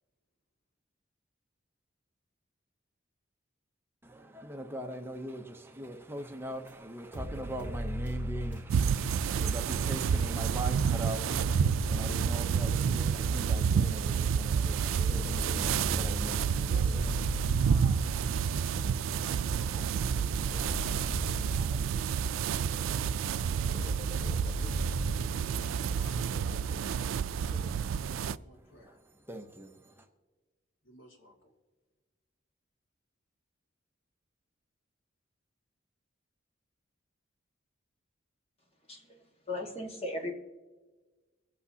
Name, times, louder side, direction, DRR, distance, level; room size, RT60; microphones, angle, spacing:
voice 1, 4.0-16.7 28.6-30.1, right 1 dB, 10° right, 0.7 m, -43 dB
sound 1, 6.7-6.8 7.1-9.5 9.9-13.2 14.1-14.2 14.5-22.0 22.3-22.9 23.3-23.4 23.7-26.1, equal, 5° left, 2.8 m, -38 dB
sound 2, 8.7-28.4, right 7 dB, 85° right, 0.3 m, -29 dB
voice 2, 16.7-17.2 17.6-18.1 19.2-22.6 23.3-25.4 25.9-29.0 30.8-31.5, equal, 75° left, 2.0 m, -54 dB
voice 3, 39.5-40.3, left 2 dB, 30° left, 1.6 m, -36 dB
24.0 x 8.3 x 2.8 m
head